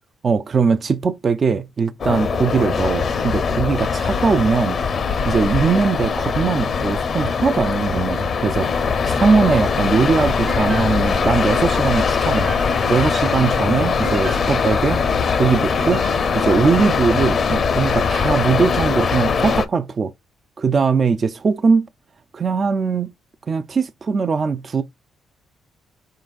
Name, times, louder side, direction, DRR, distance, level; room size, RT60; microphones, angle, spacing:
voice 1, 0.2-4.8 5.2-12.5 12.9-15.0 15.4-16.0 16.3-20.1 20.6-21.9 22.3-23.1 23.5-24.8, right 5 dB, 40° right, 0.4 m, -20 dB
sound 1, 2.0-19.6, left 5 dB, 50° left, 0.6 m, -21 dB
sound 2, 10.5-17.4, right 5 dB, 60° right, 1.2 m, -38 dB
4.5 x 3.8 x 2.4 m
cardioid pair, 90°, 0 cm